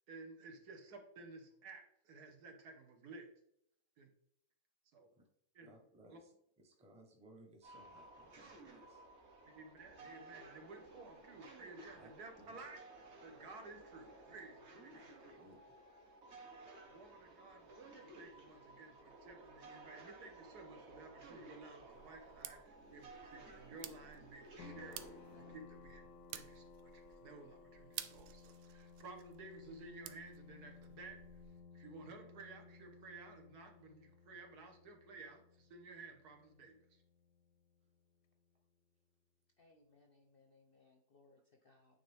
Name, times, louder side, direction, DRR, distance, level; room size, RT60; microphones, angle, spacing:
voice 1, 0.1-3.3 4.0-4.1 4.9-5.0 5.6-5.7 6.1-6.2 9.4-12.8 13.2-15.2 16.9-31.2 31.7-37.0, right 3 dB, 70° right, 4 dB, 1.6 m, -55 dB
voice 2, 5.6-9.0 12.0-12.1 12.4-12.6 14.9-15.0 15.3-15.8, right 1 dB, 5° right, 2 dB, 0.7 m, -62 dB
sound 1, 7.6-25.6, right 2 dB, 45° right, 1.4 m, -56 dB
sound 2, 21.9-31.6, right 11 dB, 90° right, 1.2 m, -54 dB
sound 3, 24.6-37.9, left 5 dB, 85° left, 1.2 m, -59 dB
voice 3, 39.6-42.0, left 3 dB, 50° left, 2 dB, 0.7 m, -68 dB
9.1 x 3.9 x 3.4 m, 0.75 s
omnidirectional pair, 1.7 m